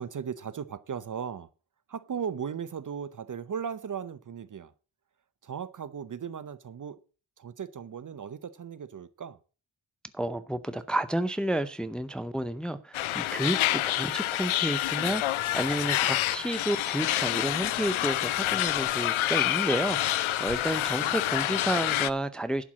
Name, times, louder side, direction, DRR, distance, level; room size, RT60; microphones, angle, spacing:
voice 1, 0.0-1.5 1.9-4.7 5.4-7.0 7.4-9.4 20.7-21.2, right 7 dB, 40° right, 0.6 m, -37 dB
voice 2, 10.1-22.6, right 1 dB, ahead, 0.6 m, -31 dB
sound 1, 12.9-22.1, left 14 dB, 85° left, 0.6 m, -28 dB
11.5 x 4.6 x 7.3 m
wide cardioid pair, 110°, 47 cm